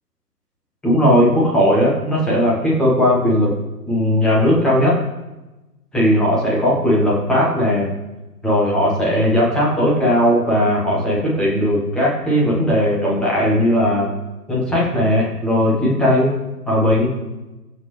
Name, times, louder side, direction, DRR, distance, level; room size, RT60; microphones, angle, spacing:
voice 1, 0.8-3.5 3.9-5.0 5.9-7.9 8.4-14.1 14.5-16.3 16.7-17.1, equal, ahead, -5 dB, 1.4 m, -17 dB
20.5 x 8.0 x 3.4 m, 1.1 s
figure-of-eight pair, 150°, 48 cm